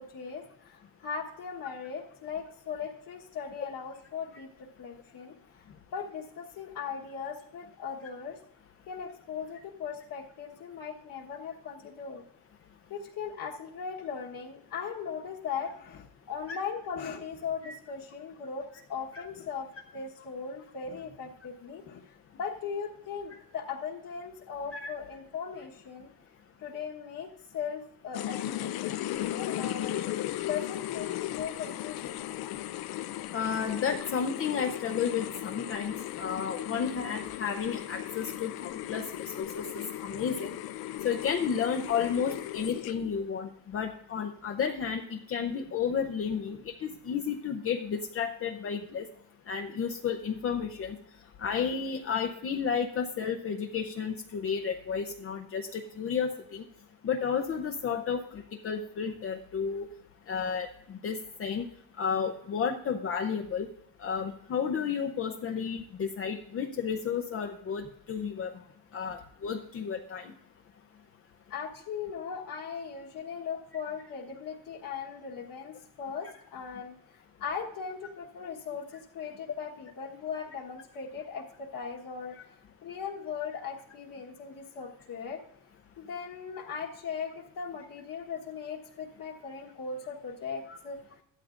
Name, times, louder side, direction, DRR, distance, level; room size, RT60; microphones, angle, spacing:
voice 1, 0.0-5.4 5.6-8.4 8.9-12.2 12.9-22.0 22.3-26.1 26.6-30.0 30.4-32.2 71.5-82.4 82.8-85.4 86.0-91.0, left 6 dB, 60° left, -2 dB, 1.4 m, -38 dB
sound 1, 28.1-43.2, left 13 dB, 80° left, 0.6 m, -36 dB
voice 2, 33.3-39.1 39.4-40.6 41.0-49.1 49.5-51.0 51.4-56.6 57.0-59.9 60.3-61.6 62.0-63.7 64.0-68.5 68.9-70.3 90.7-90.8, left 6 dB, 35° left, 5 dB, 0.7 m, -32 dB
14.5 x 12.5 x 2.5 m, 0.72 s
cardioid pair, 150°, 37 cm